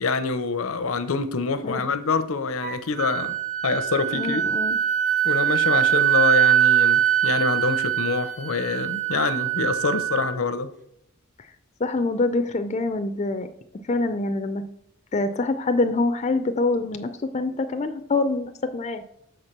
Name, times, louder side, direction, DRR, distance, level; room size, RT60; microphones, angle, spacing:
voice 1, 0.0-3.3 3.6-4.4 5.2-10.7, left 4 dB, 80° left, 12 dB, 0.7 m, -26 dB
Wind instrument woodwind instrument, 2.6-10.4, right 11 dB, 35° right, 1.1 m, -22 dB
voice 2, 4.1-4.8 11.8-13.5 13.9-14.6 15.1-19.0, left 3 dB, 35° left, 8 dB, 0.4 m, -25 dB
6.4 x 4.4 x 6.6 m, 0.76 s
head